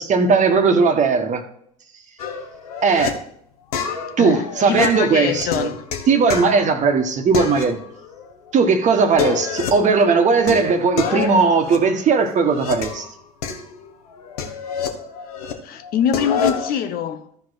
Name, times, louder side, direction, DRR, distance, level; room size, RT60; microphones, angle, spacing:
voice 1, 0.0-1.4 2.8-3.1 4.2-5.7 6.1-7.8 8.5-13.1, right 4 dB, 40° right, 1.4 m, -17 dB
sound 1, 2.2-3.1 3.7-7.0 7.3-8.2 8.5-8.6 9.0-9.9 10.5-13.1 13.4-15.5 15.8-16.7, left 6 dB, 75° left, 1.2 m, -28 dB
voice 2, 4.2-5.9 7.3-7.4 15.6-17.3, left 8 dB, 50° left, 1.0 m, -24 dB
14.0 x 4.8 x 4.1 m
hypercardioid pair, 70°, 19 cm